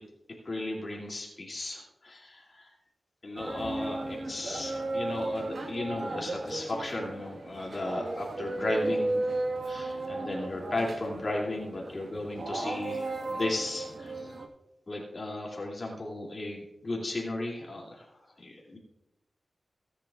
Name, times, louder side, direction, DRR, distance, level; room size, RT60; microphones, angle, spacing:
voice 1, 0.4-2.7 3.2-9.3 9.6-14.3 14.9-18.1 18.4-18.8, left 2 dB, 45° left, -2 dB, 2.7 m, -35 dB
sound 1, 3.4-14.5, right 2 dB, 65° right, 1.6 m, -35 dB
17.5 x 10.0 x 2.5 m, 0.93 s
wide cardioid pair, 80°, 0 cm